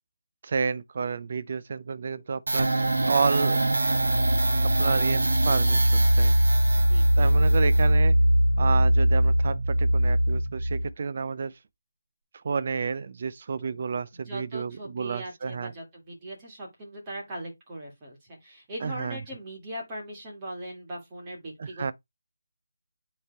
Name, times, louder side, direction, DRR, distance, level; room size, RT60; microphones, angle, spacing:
voice 1, 0.4-2.7 3.0-3.6 4.6-6.3 7.2-8.2 8.6-11.5 12.4-15.7 18.8-19.2 21.6-21.9, right 5 dB, 25° right, 0.5 m, -30 dB
sound 1, 2.5-10.9, right 1 dB, 65° right, 1.4 m, -21 dB
voice 2, 6.8-7.3 14.3-21.9, right 1 dB, 10° right, 1.9 m, -40 dB
9.4 x 3.3 x 3.3 m
figure-of-eight pair, 180°, 0 cm